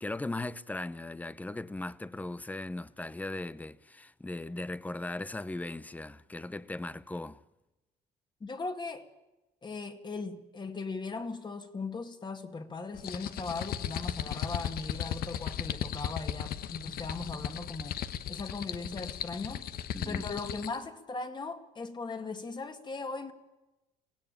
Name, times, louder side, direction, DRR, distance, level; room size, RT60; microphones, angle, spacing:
voice 1, 0.0-7.4 19.9-20.3, left 2 dB, 10° left, 0.7 m, -38 dB
voice 2, 8.4-9.0 9.6-18.0 18.3-19.7 20.1-23.3, left 3 dB, 25° left, 2.1 m, -38 dB
sound 1, 12.9-20.8, left 10 dB, 65° left, 1.1 m, -36 dB
24.0 x 17.5 x 8.9 m
cardioid pair, 110°, 17 cm